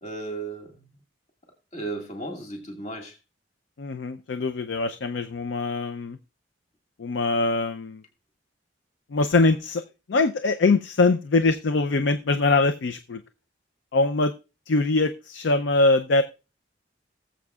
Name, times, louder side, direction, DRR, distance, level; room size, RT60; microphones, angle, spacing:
voice 1, 0.0-1.0 1.7-3.2, right 2 dB, 40° left, 1 dB, 2.0 m, -35 dB
voice 2, 3.8-6.2 7.0-8.0 9.1-9.8 10.1-13.2 13.9-14.3 14.7-16.2, left 3 dB, 70° left, 10 dB, 0.5 m, -23 dB
19.0 x 7.6 x 2.3 m, 0.31 s
head